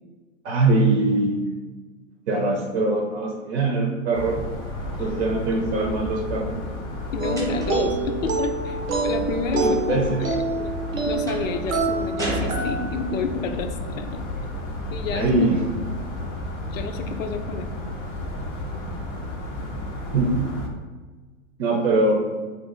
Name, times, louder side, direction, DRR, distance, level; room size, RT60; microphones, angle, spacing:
voice 1, 0.4-1.4 2.3-4.4 5.0-6.5 9.6-10.2 15.1-15.7 20.1-20.3 21.6-22.2, right 2 dB, 55° right, 0 dB, 0.7 m, -22 dB
sound 1, 4.1-20.7, left 1 dB, 20° left, 0.4 m, -32 dB
voice 2, 7.1-10.0 10.6-10.7 11.1-14.2 14.9-15.5 16.7-17.7, left 5 dB, 75° left, 7 dB, 0.5 m, -29 dB
sound 2, 7.2-13.1, right 4 dB, 90° right, 0.7 m, -27 dB
sound 3, 7.4-7.9 11.3-11.6 12.2-13.3, right 1 dB, 10° right, 0.9 m, -31 dB
2.7 x 2.5 x 3.7 m, 1.3 s
hypercardioid pair, 105°, 39 cm